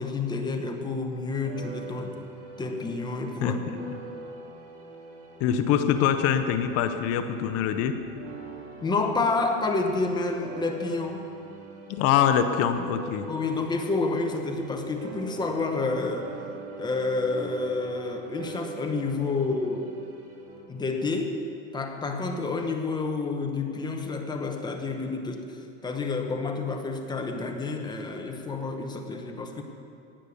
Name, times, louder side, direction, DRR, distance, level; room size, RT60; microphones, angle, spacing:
voice 1, 0.0-2.1 2.6-3.9 8.8-11.3 13.3-16.3 16.8-19.9 20.7-21.4 21.7-29.6, left 3 dB, 10° left, 4 dB, 1.0 m, -29 dB
sound 1, 1.4-15.9 16.1-20.6, right 3 dB, 65° right, 3.2 m, -43 dB
voice 2, 5.4-8.0 11.9-13.3, left 8 dB, 40° left, 9 dB, 0.7 m, -24 dB
17.5 x 6.7 x 7.0 m, 2.5 s
supercardioid pair, 150°, 37 cm